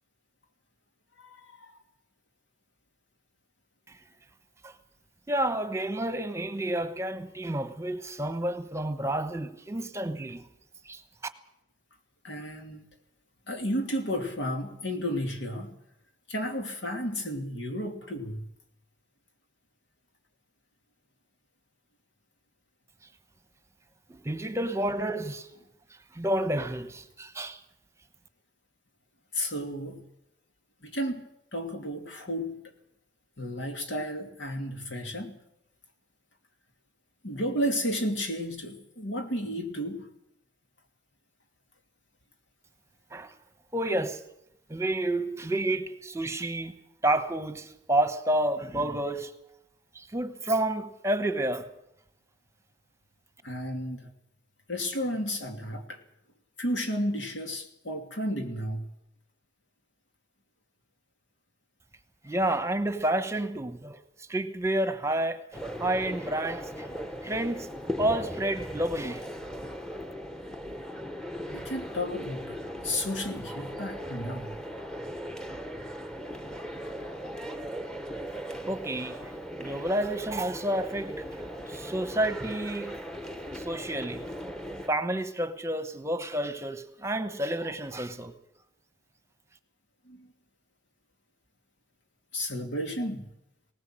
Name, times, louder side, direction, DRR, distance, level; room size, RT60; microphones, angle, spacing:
voice 1, 1.2-1.8 12.2-12.9 13.5-15.8 16.3-18.5 29.3-30.0 30.8-31.2 31.5-32.6 33.4-35.3 37.2-40.1 53.4-54.1 54.7-56.0 56.6-58.9 71.5-74.6 90.0-90.3 92.3-93.3, equal, 75° left, 2.8 m, -32 dB
voice 2, 5.3-10.4 10.8-11.0 24.1-25.5 26.1-27.6 43.1-43.3 43.7-44.2 44.7-46.8 47.0-49.3 49.9-51.7 62.2-66.9 67.2-67.7 68.0-69.2 78.7-79.2 79.6-83.0 83.5-84.3 84.9-88.3, right 1 dB, 15° right, 1.1 m, -30 dB
sound 1, 65.5-84.9, equal, 5° left, 1.1 m, -38 dB
20.0 x 18.5 x 7.7 m
head